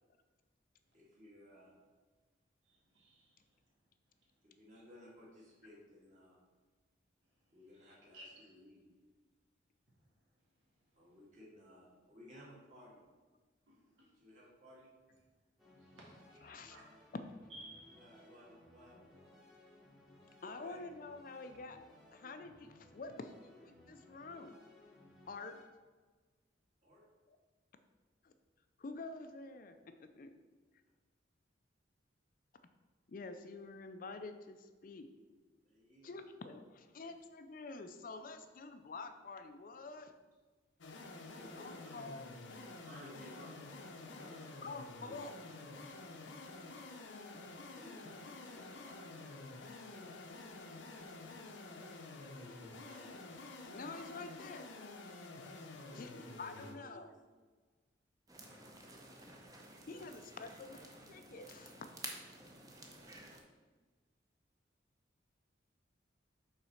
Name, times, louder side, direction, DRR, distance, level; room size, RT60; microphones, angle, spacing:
voice 1, 0.9-1.7 4.4-6.4 7.5-8.9 11.0-13.1 14.1-14.9 18.0-19.4 20.4-20.9 26.8-27.0 35.6-36.2 36.9-37.1 41.3-42.1 42.7-43.5 44.0-45.2 45.5-45.6 47.6-49.6 49.8-50.6 51.7-53.2 55.9-57.0, equal, 40° right, -5 dB, 2.0 m, -58 dB
voice 2, 2.7-3.4 7.8-8.3 13.7-14.1 15.9-16.8 17.5-18.1, right 1 dB, 80° right, -4 dB, 2.0 m, -56 dB
sound 1, 15.6-25.7, left 1 dB, ahead, 1.0 m, -62 dB
voice 3, 16.4-16.8 20.4-21.8 22.1-23.3 23.6-24.6 25.3-25.6 27.3-27.4 28.2-28.3 28.8-30.3 33.1-35.1 36.0-40.1 41.6-42.3 44.6-45.4 53.7-54.7 55.9-57.1 59.9-61.7, left 3 dB, 45° left, 8 dB, 0.4 m, -48 dB
sound 2, 40.8-56.8, left 2 dB, 80° left, 0.7 m, -50 dB
sound 3, 58.3-63.4, right 2 dB, 20° right, 0.7 m, -52 dB
5.6 x 4.0 x 5.6 m, 1.4 s
head